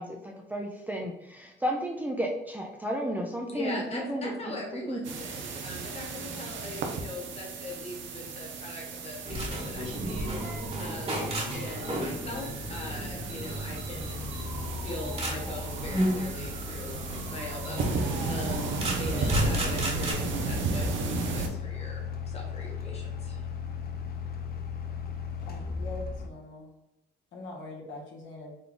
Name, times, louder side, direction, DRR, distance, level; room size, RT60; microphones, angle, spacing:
voice 1, 0.0-5.0, right 1 dB, 10° right, 0 dB, 0.4 m, -33 dB
voice 2, 3.4-10.3 10.8-14.3 14.8-23.6, left 2 dB, 30° left, -2 dB, 1.3 m, -41 dB
sound 1, 5.0-21.5, right 4 dB, 70° right, 0.6 m, -35 dB
sound 2, 9.2-20.1, equal, 30° right, 1.3 m, -33 dB
sound 3, 11.5-26.3, left 6 dB, 50° left, 0.5 m, -38 dB
voice 3, 25.4-26.7 27.3-28.6, left 2 dB, 70° left, 0 dB, 1.2 m, -42 dB
3.9 x 2.2 x 3.6 m, 0.90 s
cardioid pair, 90°, 20 cm